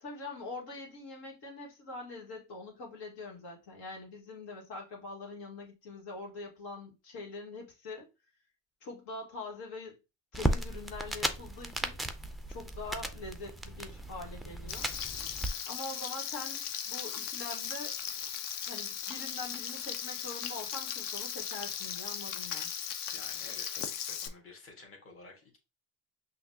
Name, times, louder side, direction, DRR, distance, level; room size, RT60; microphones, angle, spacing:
voice 1, 0.0-8.1 8.8-10.0 10.3-12.0 12.5-14.9 15.7-18.0 18.7-22.7, left 3 dB, 75° left, 1.8 m, -44 dB
sound 1, 10.3-15.5, right 1 dB, ahead, 0.3 m, -35 dB
Frying (food), 14.7-24.3, left 8 dB, 55° left, 0.7 m, -38 dB
voice 2, 23.1-25.6, left 3 dB, 35° left, 1.6 m, -52 dB
5.8 x 2.6 x 2.7 m
cardioid pair, 105°, 39 cm